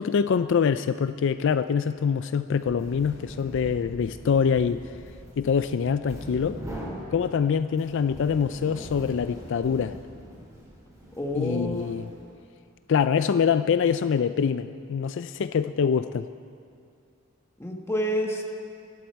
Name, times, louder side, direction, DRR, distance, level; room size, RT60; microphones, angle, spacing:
voice 1, 0.0-4.8 5.4-6.6 7.1-10.0 11.4-12.1 12.9-16.3, left 6 dB, 60° left, 12 dB, 0.4 m, -24 dB
sound 1, 2.5-12.4, equal, 15° right, 3.9 m, -42 dB
voice 2, 11.2-11.9 17.6-18.4, equal, 15° left, 1 dB, 1.5 m, -28 dB
25.5 x 12.0 x 4.6 m, 2.4 s
head